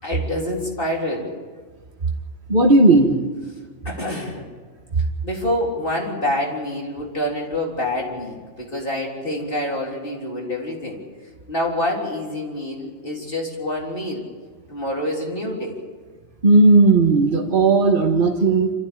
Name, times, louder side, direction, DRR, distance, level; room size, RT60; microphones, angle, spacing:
voice 1, 0.0-1.3 3.8-4.5 5.2-11.0 11.5-14.2 14.7-15.7, left 1 dB, 50° left, -2 dB, 3.8 m, -26 dB
voice 2, 2.5-3.2 4.9-5.0 16.4-18.7, right 3 dB, 50° right, 0 dB, 1.6 m, -15 dB
26.5 x 14.5 x 8.8 m, 1.5 s
omnidirectional pair, 1.2 m